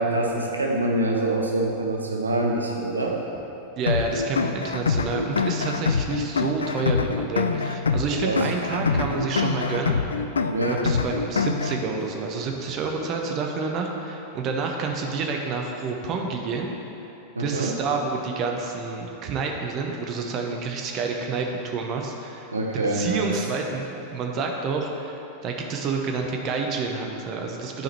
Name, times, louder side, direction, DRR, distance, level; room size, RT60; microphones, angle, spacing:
voice 1, 0.0-3.2 5.1-5.2 8.2-8.5 8.8-9.1 10.5-10.8 17.3-17.8 22.5-23.3, right 2 dB, 80° right, 0 dB, 0.8 m, -25 dB
sound 1, 2.7-3.5 4.0-4.1 4.5-5.5 6.0-6.2 6.7-6.8 7.2-7.7 8.0-8.2 8.7-8.9 9.3-9.5 9.8-10.8 11.3-12.1 12.5-13.0, left 2 dB, 35° left, 1.8 m, -49 dB
voice 2, 3.8-10.0 10.7-16.7 17.4-22.5 22.9-23.9 24.1-27.8, right 4 dB, 35° right, 2 dB, 0.8 m, -29 dB
sound 2, 3.9-11.9, left 5 dB, 75° left, 0.3 m, -25 dB
10.5 x 5.0 x 4.4 m, 3.0 s
figure-of-eight pair, 90°, 0 cm